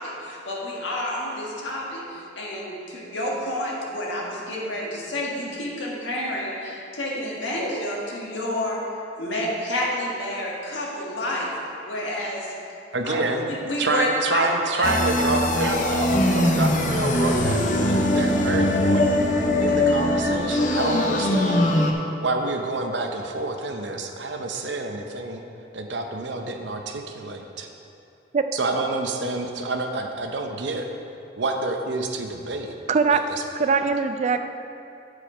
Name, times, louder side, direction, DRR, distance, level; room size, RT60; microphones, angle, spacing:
voice 1, 0.0-8.8 9.2-11.5 11.8-12.5 13.0-13.2 13.5-14.5 14.8-14.9, left 1 dB, 90° left, -3 dB, 1.6 m, -29 dB
voice 2, 12.9-13.5 13.8-19.1 19.6-21.7 22.2-25.4 25.7-27.7 28.5-30.9 31.4-32.7 33.1-33.8, right 2 dB, 70° right, 4 dB, 0.7 m, -28 dB
sound 1, 14.8-21.9, left 1 dB, 40° left, 0.7 m, -21 dB
voice 3, 32.9-33.2 33.5-34.4, right 5 dB, 40° right, 8 dB, 0.3 m, -21 dB
8.9 x 4.9 x 5.0 m, 2.7 s
head